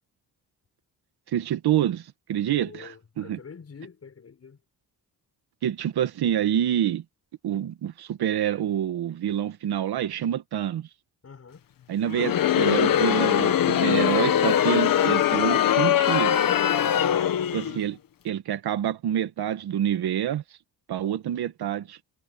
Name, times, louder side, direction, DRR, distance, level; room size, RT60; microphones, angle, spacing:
voice 1, 1.3-3.4 5.6-7.0 7.4-10.9 11.9-16.4 17.5-18.0 18.2-20.4 20.9-22.0, right 10 dB, 75° right, 1.6 m, -27 dB
voice 2, 2.5-4.6 11.2-11.7 16.9-17.5, left 5 dB, 40° left, 6.5 m, -46 dB
Crowd, 12.1-17.8, left 10 dB, 60° left, 1.2 m, -22 dB
cardioid pair, 120°, 38 cm